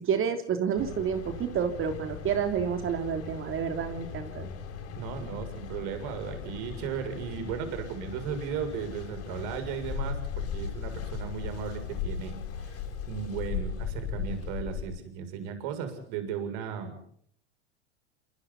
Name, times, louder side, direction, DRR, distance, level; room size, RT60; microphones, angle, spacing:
voice 1, 0.0-4.5, right 7 dB, 35° right, 6 dB, 3.4 m, -29 dB
Mechanical fan, 0.8-14.8, left 7 dB, 45° left, 8.0 m, -37 dB
voice 2, 5.0-12.8 13.1-17.0, right 7 dB, 55° right, 8 dB, 7.2 m, -36 dB
30.0 x 27.0 x 4.2 m, 0.64 s
hypercardioid pair, 85°, 34 cm